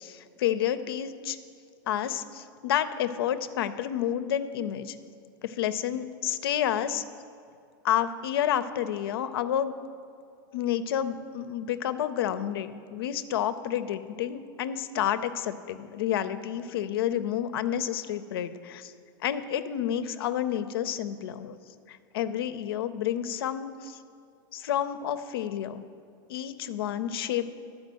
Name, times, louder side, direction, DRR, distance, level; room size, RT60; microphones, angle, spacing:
voice 1, 0.0-1.4 1.9-5.0 5.4-7.0 7.8-9.8 10.5-18.9 19.2-21.6 21.9-24.0 24.5-25.8 26.3-27.5, left 10 dB, 85° left, 11 dB, 0.5 m, -30 dB
10.5 x 4.8 x 7.5 m, 2.3 s
supercardioid pair, 120°, 12 cm